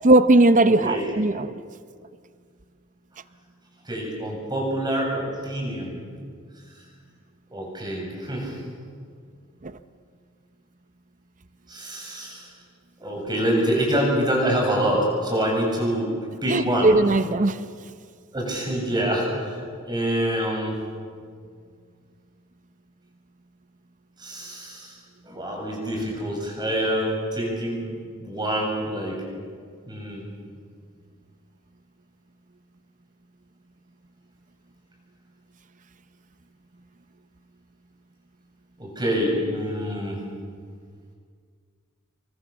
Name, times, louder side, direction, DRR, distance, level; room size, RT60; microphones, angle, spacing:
voice 1, 0.0-1.5 16.5-17.6, right 2 dB, 35° right, 12 dB, 0.7 m, -18 dB
voice 2, 0.7-1.0 3.9-6.0 7.5-8.6 11.7-12.5 13.0-16.1 16.4-16.9 18.3-19.6 19.8-20.7 24.2-25.0 25.2-27.9 28.2-29.2 29.9-30.2 38.8-40.2, right 1 dB, 20° right, -1 dB, 7.5 m, -26 dB
28.0 x 24.0 x 7.4 m, 2.1 s
head